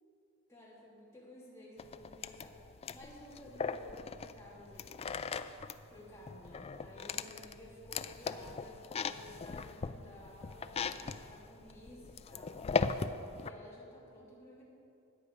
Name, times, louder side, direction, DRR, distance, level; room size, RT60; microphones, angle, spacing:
voice 1, 0.5-5.0 5.9-12.6 13.4-14.6, left 1 dB, 15° left, -7 dB, 3.2 m, -54 dB
sound 1, 1.8-13.5, left 5 dB, 30° left, 0.3 m, -39 dB
14.0 x 9.5 x 4.9 m, 2.9 s
head